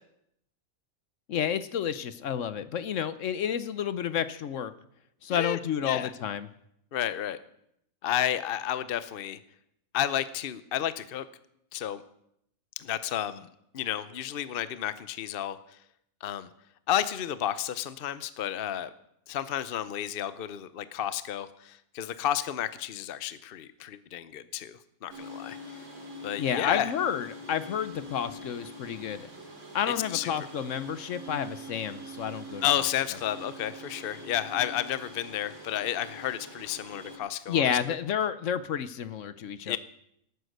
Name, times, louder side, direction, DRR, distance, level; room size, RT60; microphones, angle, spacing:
voice 1, 1.3-4.7 5.2-6.5 26.4-29.3 29.7-32.7 37.5-39.8, left 8 dB, 65° left, 13 dB, 1.1 m, -30 dB
voice 2, 5.3-6.1 6.9-7.4 8.0-9.4 9.9-11.3 11.7-12.0 12.8-13.5 13.7-15.8 16.2-16.5 16.9-18.9 19.3-25.8 26.2-26.9 30.1-30.5 32.6-37.7 39.7-39.8, left 11 dB, 50° left, 14 dB, 0.8 m, -31 dB
sound 1, 25.1-37.2, equal, 60° right, 3.5 m, -44 dB
17.5 x 9.4 x 6.5 m, 0.75 s
omnidirectional pair, 1.4 m